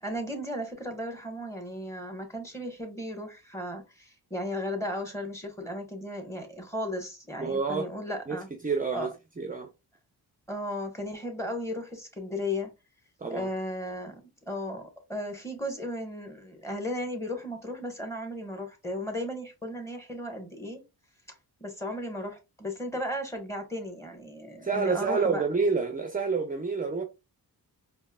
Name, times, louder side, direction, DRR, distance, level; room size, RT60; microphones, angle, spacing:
voice 1, 0.0-8.5 8.9-9.1 10.5-12.7 13.3-20.8 21.6-25.4, left 1 dB, 5° left, 1.5 m, -35 dB
voice 2, 7.4-7.9 8.3-8.4 8.6-9.7 13.2-13.5 24.6-27.0, right 4 dB, 20° right, 0.6 m, -28 dB
4.4 x 2.8 x 2.4 m
cardioid pair, 60°, 40 cm